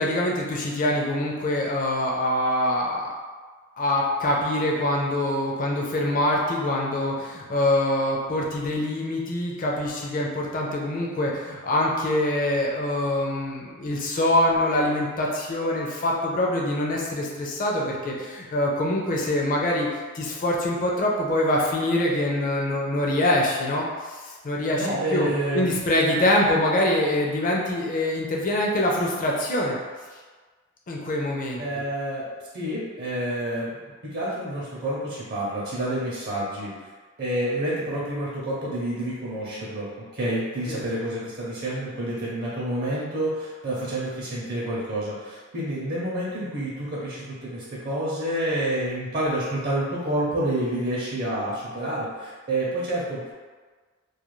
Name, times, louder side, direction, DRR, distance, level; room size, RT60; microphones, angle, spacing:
voice 1, 0.0-3.1 3.8-29.8 30.9-31.6 40.7-40.8, left 1 dB, 40° left, -2 dB, 0.5 m, -24 dB
voice 2, 24.7-25.7 26.1-26.2 31.6-32.2 32.5-33.7 34.0-36.7 37.2-39.9 40.1-53.3, right 1 dB, 50° right, -6 dB, 0.6 m, -28 dB
2.3 x 2.2 x 3.1 m, 1.4 s
head